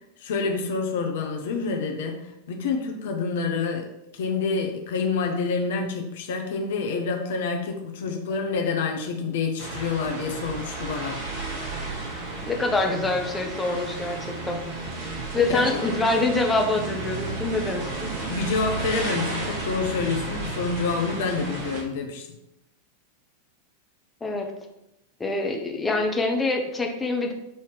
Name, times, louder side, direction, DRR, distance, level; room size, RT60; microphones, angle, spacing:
voice 1, 0.2-11.2 15.5-15.8 18.3-22.3, left 4 dB, 55° left, 4 dB, 0.6 m, -28 dB
sound 1, 9.6-21.8, right 3 dB, 50° right, 1.3 m, -33 dB
voice 2, 12.5-14.6 15.3-18.1 24.2-24.5 25.2-27.3, left 2 dB, 15° left, 2 dB, 0.6 m, -25 dB
5.5 x 2.8 x 3.1 m, 0.86 s
figure-of-eight pair, 90°, 0 cm